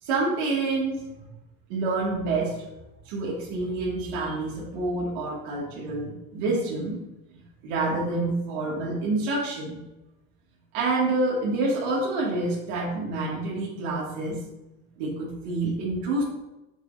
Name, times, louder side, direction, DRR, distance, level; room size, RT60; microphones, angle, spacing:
voice 1, 0.0-1.1 1.7-2.6 3.1-7.0 7.6-9.8 10.7-14.4 15.0-16.2, right 2 dB, 85° right, -5 dB, 1.9 m, -27 dB
7.3 x 4.5 x 4.0 m, 0.97 s
cardioid pair, 120°, 33 cm